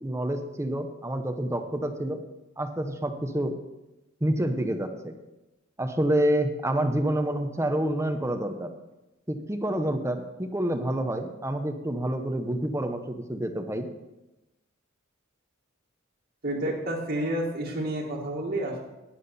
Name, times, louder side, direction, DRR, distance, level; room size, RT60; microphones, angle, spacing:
voice 1, 0.0-2.2 2.6-3.5 4.2-5.1 5.8-8.7 9.3-13.9, right 1 dB, 15° right, 6 dB, 0.9 m, -28 dB
voice 2, 16.4-18.8, right 1 dB, 55° right, -5 dB, 1.9 m, -30 dB
11.0 x 10.0 x 4.3 m, 1.0 s
head